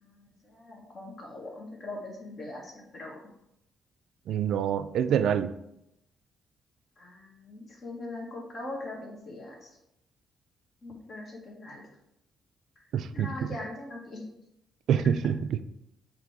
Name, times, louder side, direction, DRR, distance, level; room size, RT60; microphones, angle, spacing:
voice 1, 0.0-3.2 7.0-9.7 10.8-11.9 13.1-14.2, left 2 dB, 50° left, -1 dB, 1.6 m, -41 dB
voice 2, 4.3-5.5 12.9-13.5 14.9-15.6, right 8 dB, 75° right, 11 dB, 0.4 m, -26 dB
7.4 x 3.1 x 4.8 m, 0.81 s
cardioid pair, 90°, 0 cm